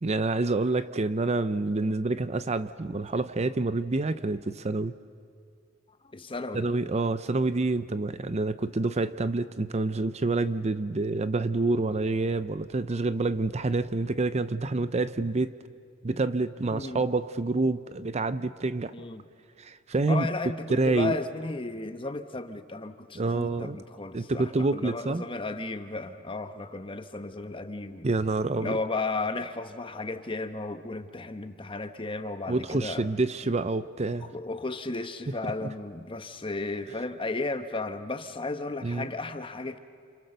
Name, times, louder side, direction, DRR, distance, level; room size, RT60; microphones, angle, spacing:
voice 1, 0.0-4.9 6.5-15.5 16.0-19.0 19.6-20.3 20.7-21.2 23.1-23.8 24.1-25.2 28.0-28.8 32.5-34.3 35.6-35.7 38.8-39.1, right 3 dB, 35° right, 13 dB, 0.6 m, -27 dB
voice 2, 6.1-6.7 16.7-17.0 18.9-19.2 20.1-28.1 28.6-33.1 34.2-39.8, left 3 dB, 25° left, 8 dB, 1.1 m, -34 dB
29.5 x 28.0 x 6.7 m, 2.3 s
head